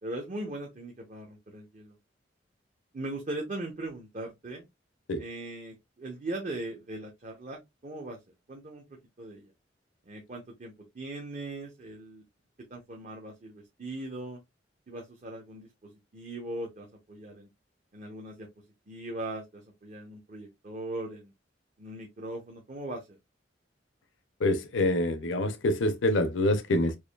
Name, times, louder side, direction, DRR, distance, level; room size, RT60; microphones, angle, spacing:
voice 1, 0.0-1.9 2.9-4.7 5.2-8.2 8.5-8.9 9.2-9.5 10.1-12.2 12.7-14.4 14.9-15.7 16.1-17.5 17.9-18.5 18.9-21.3 21.8-23.1, right 2 dB, 45° right, 0.8 m, -39 dB
voice 2, 24.4-27.0, left 1 dB, 90° left, 0.6 m, -26 dB
4.7 x 2.6 x 2.2 m
head